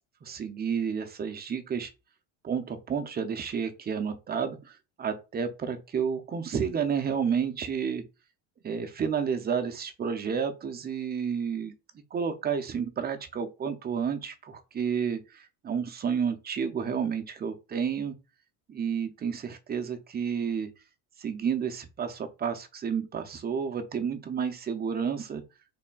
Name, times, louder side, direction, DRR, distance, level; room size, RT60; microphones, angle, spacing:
voice 1, 0.2-1.9 2.4-8.0 8.6-11.7 12.1-18.1 18.7-20.7 21.2-25.4, right 7 dB, 20° right, 0.4 m, -31 dB
4.1 x 3.4 x 2.3 m
cardioid pair, 115°, 48 cm